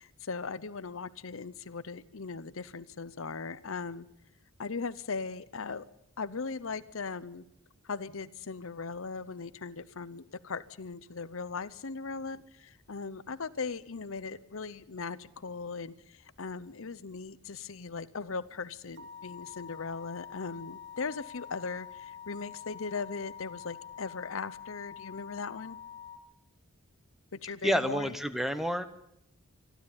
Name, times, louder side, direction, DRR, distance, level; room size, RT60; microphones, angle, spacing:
voice 1, 0.0-4.1 4.6-5.9 6.2-7.4 7.8-25.8 27.3-28.2, left 4 dB, 60° left, 16 dB, 0.8 m, -39 dB
sound 1, 18.9-26.2, left 8 dB, 60° right, 3.0 m, -46 dB
voice 2, 27.6-28.9, equal, ahead, 11 dB, 1.0 m, -29 dB
26.0 x 12.5 x 8.7 m, 0.76 s
head